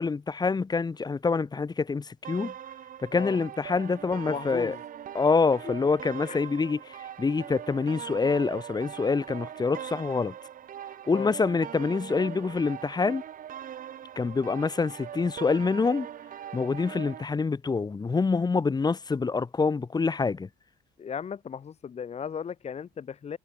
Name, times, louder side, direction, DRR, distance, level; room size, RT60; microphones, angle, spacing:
voice 1, 0.0-2.5 3.0-4.8 5.1-10.3 11.1-13.2 14.2-16.1 16.5-20.5, left 4 dB, 25° left, 2.4 m, -26 dB
sound 1, 2.2-17.3, right 10 dB, 55° right, 4.0 m, -41 dB
voice 2, 4.3-4.8 5.6-5.7 6.2-6.4 11.1-11.3 21.0-23.4, left 7 dB, 40° left, 3.3 m, -36 dB
cardioid pair, 110°, 17 cm